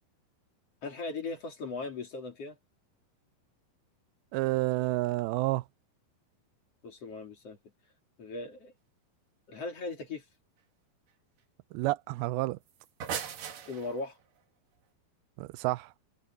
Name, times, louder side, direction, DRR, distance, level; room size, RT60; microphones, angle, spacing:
voice 1, 0.8-2.6 6.8-7.6 8.2-8.7 9.5-10.2 13.7-14.2, left 3 dB, 40° left, 3.9 m, -38 dB
voice 2, 4.3-5.7 11.7-12.6 15.4-15.9, right 19 dB, 90° right, 2.5 m, -29 dB
sound 1, 12.7-14.2, right 8 dB, 65° right, 3.4 m, -38 dB
omnidirectional pair, 4.3 m